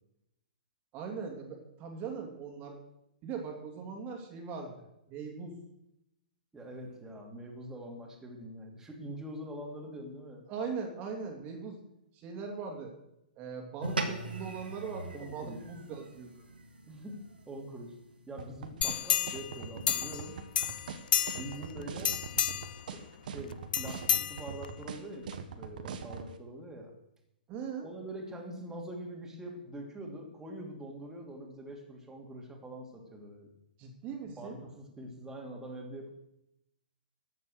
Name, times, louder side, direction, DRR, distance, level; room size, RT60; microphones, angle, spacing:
voice 1, 0.9-2.8 3.2-5.5 10.5-11.8 12.1-12.9 13.4-16.4 27.5-27.9 33.8-34.6, right 5 dB, 30° right, 2 dB, 2.6 m, -40 dB
voice 2, 6.5-10.5 15.1-15.6 16.9-17.9 18.3-20.4 21.3-22.2 22.9-26.9 27.8-33.5 34.2-36.2, right 1 dB, 10° right, 0 dB, 2.7 m, -44 dB
sound 1, 13.8-18.4, right 2 dB, 90° right, 2.0 m, -40 dB
sound 2, 18.4-26.3, right 7 dB, 60° right, 1.4 m, -41 dB
sound 3, 18.8-20.3 20.5-21.6 22.0-22.8 23.7-24.8 25.3-25.4, left 9 dB, 65° left, 0.5 m, -30 dB
13.5 x 7.3 x 6.6 m, 0.83 s
hypercardioid pair, 125°, 5 cm